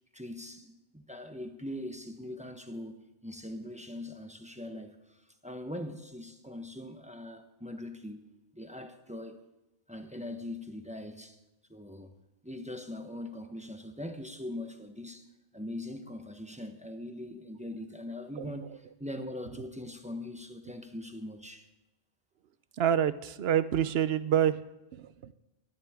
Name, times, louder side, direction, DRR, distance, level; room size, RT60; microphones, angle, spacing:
voice 1, 0.1-8.3 8.5-9.4 9.9-11.4 11.7-12.1 12.4-15.3 15.5-21.7, left 1 dB, 5° right, 1.0 m, -41 dB
voice 2, 22.8-24.6 24.9-25.3, right 10 dB, 70° right, 0.9 m, -27 dB
19.0 x 13.5 x 3.7 m
omnidirectional pair, 1.1 m